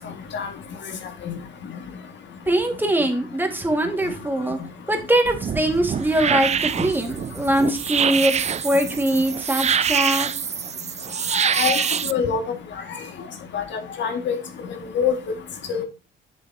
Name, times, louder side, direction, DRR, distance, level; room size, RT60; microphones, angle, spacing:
voice 1, 2.5-4.6 4.9-10.3, right 1 dB, 10° right, 1.9 m, -22 dB
sound 1, 5.3-12.1, right 8 dB, 35° right, 0.4 m, -25 dB
voice 2, 11.3-12.4 13.5-14.4 14.9-15.1 15.7-15.8, left 7 dB, 65° left, 2.0 m, -24 dB
7.5 x 7.5 x 2.8 m
cardioid pair, 90°, 20 cm